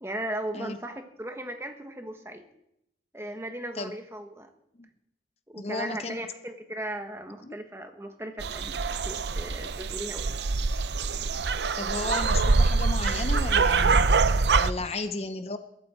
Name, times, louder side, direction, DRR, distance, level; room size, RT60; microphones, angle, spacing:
voice 1, 0.0-2.4 3.1-4.5 5.5-10.4, right 1 dB, 15° right, 5 dB, 1.4 m, -37 dB
voice 2, 5.6-6.2 7.4-7.6 11.8-14.2 14.6-15.6, left 3 dB, 35° left, 9 dB, 0.7 m, -34 dB
sound 1, 8.4-14.7, right 4 dB, 80° right, 0.6 m, -24 dB
22.5 x 13.0 x 4.4 m, 0.80 s
head